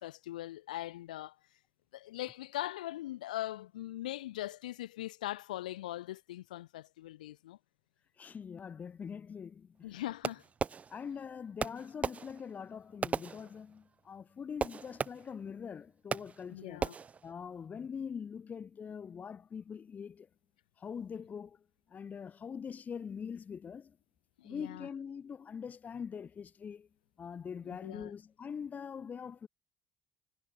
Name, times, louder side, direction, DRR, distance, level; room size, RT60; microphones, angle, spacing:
voice 1, 0.0-1.4 1.9-7.6 9.8-10.4 16.5-16.9 24.4-24.9 27.7-28.1, left 15 dB, 85° left, 2.8 m, -41 dB
voice 2, 8.2-10.0 10.9-16.8 17.2-20.3 20.8-21.6 21.9-24.0 24.4-26.9 27.2-29.5, left 7 dB, 40° left, 1.6 m, -43 dB
Fireworks, 10.2-11.3 11.6-14.0 14.6-15.5 16.1-16.5 16.8-17.3, right 6 dB, 35° right, 0.5 m, -38 dB
hypercardioid pair, 60°, 4 cm